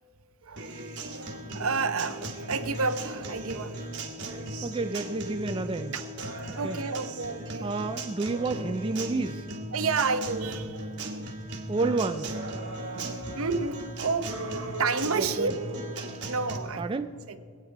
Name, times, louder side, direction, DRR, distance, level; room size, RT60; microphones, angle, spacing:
voice 1, 0.4-0.8 1.1-3.7 6.2-7.7 9.7-11.0 12.6-15.5 16.3-16.9 17.3-17.4, right 4 dB, 70° right, 0.8 m, -31 dB
Acoustic guitar, 0.6-16.6, right 1 dB, 55° right, 1.7 m, -37 dB
voice 2, 4.6-5.9 6.6-6.8 7.6-9.5 11.7-12.4 15.2-15.5 16.8-17.1, right 3 dB, 25° right, 0.3 m, -30 dB
23.5 x 8.9 x 4.7 m
head